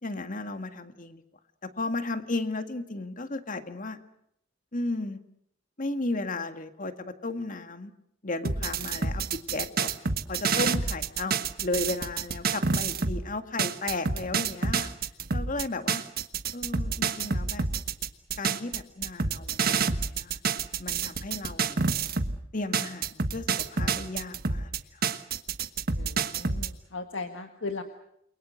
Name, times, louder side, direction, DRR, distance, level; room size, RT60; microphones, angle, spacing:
voice 1, 0.0-1.2 1.6-4.0 4.7-5.2 5.8-7.9 8.2-9.2 9.5-10.0 10.3-14.9 15.3-16.1 16.5-17.6 18.4-20.4 20.8-21.8 22.5-25.1, left 2 dB, 45° left, 8 dB, 1.9 m, -34 dB
sound 1, 8.4-13.2 13.6-22.4 22.7-26.7, right 5 dB, 50° right, 1.4 m, -28 dB
voice 2, 25.9-27.8, left 3 dB, 75° left, 6 dB, 1.8 m, -37 dB
29.5 x 23.0 x 6.5 m, 0.73 s
head